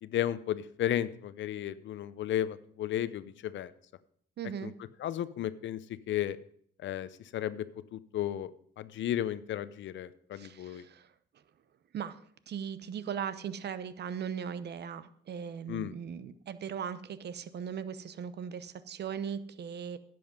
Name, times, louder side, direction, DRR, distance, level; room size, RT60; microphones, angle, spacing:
voice 1, 0.0-3.7 4.6-4.7 5.0-5.8 6.1-6.4 6.8-7.6 7.9-8.5 8.8-10.8 15.7-15.9, left 11 dB, 70° left, 16 dB, 0.7 m, -34 dB
voice 2, 4.4-4.7 10.3-11.1 11.9-20.0, right 7 dB, 55° right, 14 dB, 0.9 m, -39 dB
10.5 x 7.8 x 5.3 m, 0.63 s
cardioid pair, 90°, 20 cm